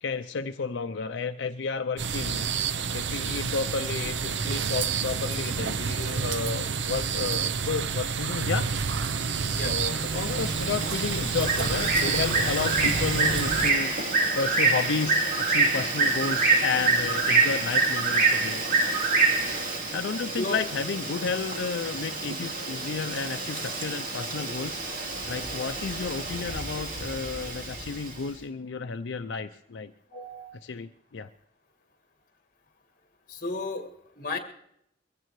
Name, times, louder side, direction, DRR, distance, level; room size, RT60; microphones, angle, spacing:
voice 1, 0.0-2.5 2.9-8.7 9.5-13.9 14.3-18.6 19.9-24.8 25.3-29.9 30.6-31.3, left 5 dB, 90° left, 7 dB, 0.5 m, -32 dB
sound 1, 2.0-13.7, right 5 dB, 85° right, 0.7 m, -29 dB
Bird, 9.4-28.1, right 3 dB, 50° right, 2.3 m, -27 dB
voice 2, 30.1-30.5 33.3-33.9 34.2-34.4, left 2 dB, 50° left, 4 dB, 2.0 m, -33 dB
22.5 x 16.0 x 3.1 m, 0.72 s
head